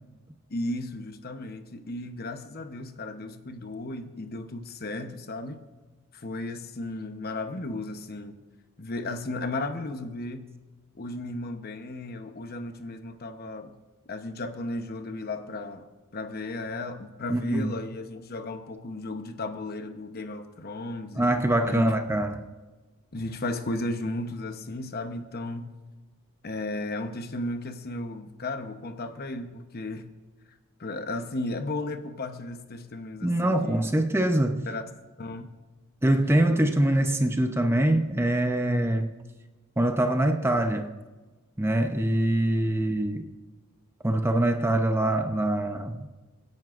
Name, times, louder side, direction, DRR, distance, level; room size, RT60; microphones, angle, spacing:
voice 1, 0.5-5.6 6.1-8.4 8.8-10.5 10.9-13.7 14.1-15.9 16.1-21.3 21.6-22.0 23.1-25.7 26.4-30.1 30.8-34.0 34.7-34.8 35.2-35.5, left 2 dB, 45° left, 8 dB, 0.9 m, -35 dB
voice 2, 17.3-17.7 21.2-22.4 33.2-34.7 36.0-39.1 39.8-40.9 41.6-43.3 44.0-46.1, right 1 dB, 10° right, 6 dB, 0.6 m, -24 dB
25.5 x 10.5 x 2.5 m, 1.2 s
head